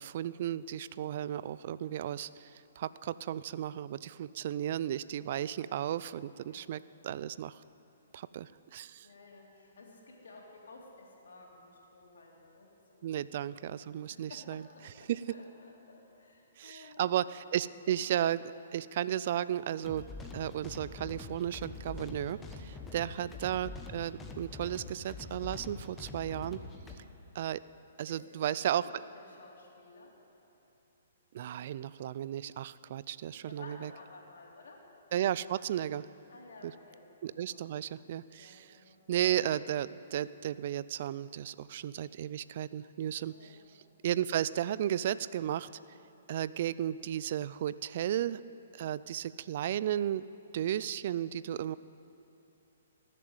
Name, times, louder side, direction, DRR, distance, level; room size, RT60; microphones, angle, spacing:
voice 1, 0.0-7.6 8.1-9.1 13.0-14.6 15.1-15.2 16.6-18.4 18.7-20.1 20.3-26.6 27.3-27.6 28.0-28.8 31.3-33.9 35.1-36.1 36.6-36.7 37.2-38.7 39.1-43.3 44.0-45.7 46.3-48.4 48.7-50.2 50.5-51.7, right 11 dB, 55° right, 17 dB, 0.3 m, -34 dB
voice 2, 6.4-6.8 9.0-13.6 14.1-17.1 17.9-18.1 22.9-23.2 28.1-30.1 31.4-31.6 33.4-34.8 36.3-37.0 37.3-37.6 38.3-39.0 43.3-43.6, left 3 dB, 75° left, -1 dB, 3.1 m, -54 dB
sound 1, 19.8-27.0, left 3 dB, 10° left, 1.2 m, -45 dB
18.5 x 7.5 x 7.9 m, 2.9 s
hypercardioid pair, 140°, 0 cm